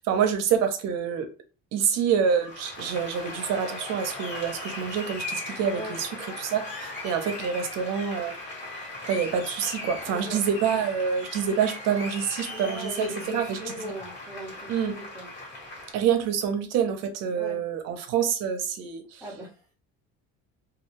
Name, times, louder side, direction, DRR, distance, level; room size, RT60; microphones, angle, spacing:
voice 1, 0.0-1.3 1.7-6.1 6.4-8.3 9.1-13.9 14.7-15.0 15.9-19.2, right 7 dB, 60° right, 7 dB, 0.6 m, -27 dB
Applause, 2.3-15.9, left 2 dB, 40° left, 1.3 m, -38 dB
voice 2, 5.7-6.0 10.1-10.4 12.5-15.3 17.3-17.6 19.2-19.7, equal, 5° right, -6 dB, 0.5 m, -38 dB
2.4 x 2.2 x 3.0 m, 0.35 s
cardioid pair, 160°, 29 cm